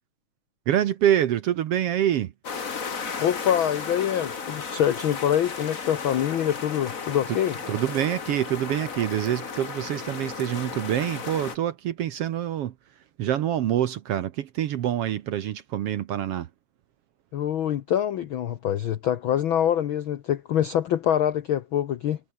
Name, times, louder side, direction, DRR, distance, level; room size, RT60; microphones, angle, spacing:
voice 1, 0.7-2.3 7.3-7.4 7.7-12.7 13.2-16.5, right 11 dB, 65° right, 1.6 m, -26 dB
sound 1, 2.4-11.6, left 5 dB, 30° left, 1.7 m, -34 dB
voice 2, 3.2-7.6 17.3-22.2, left 10 dB, 85° left, 1.1 m, -25 dB
omnidirectional pair, 3.6 m